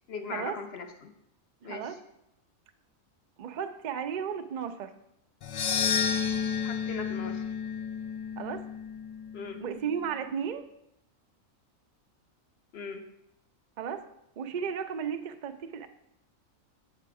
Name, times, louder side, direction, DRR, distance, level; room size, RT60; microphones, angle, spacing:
voice 1, 0.1-1.1 1.6-2.0 6.6-7.5 9.3-9.6 12.7-13.0, left 5 dB, 55° left, 6 dB, 1.0 m, -39 dB
voice 2, 1.6-2.0 3.4-4.9 8.4-8.6 9.6-10.7 13.8-14.0 14.4-15.9, right 7 dB, 55° right, 8 dB, 0.5 m, -34 dB
sound 1, 5.4-9.7, left 7 dB, 85° left, 0.3 m, -31 dB
7.6 x 5.8 x 4.7 m, 0.81 s
omnidirectional pair, 1.4 m